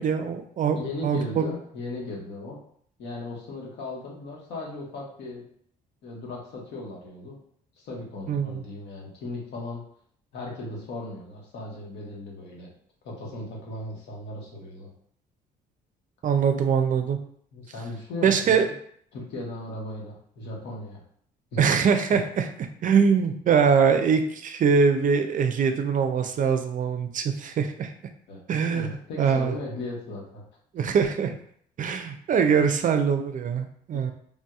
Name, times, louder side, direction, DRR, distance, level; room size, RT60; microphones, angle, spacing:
voice 1, 0.0-1.5 8.3-8.6 16.2-17.2 18.2-18.7 21.6-22.5 22.8-27.9 28.5-29.5 30.7-31.3 31.8-34.1, right 6 dB, 45° right, 7 dB, 0.4 m, -23 dB
voice 2, 0.7-2.6 3.0-5.5 6.0-7.4 7.8-9.8 10.3-12.7 13.0-14.9 17.5-18.6 19.1-21.0 21.5-21.6 28.3-28.4 28.7-30.4 32.6-32.7 33.9-34.0, left 2 dB, 75° left, -2 dB, 1.1 m, -37 dB
3.5 x 2.6 x 2.3 m, 0.63 s
supercardioid pair, 70°, 18 cm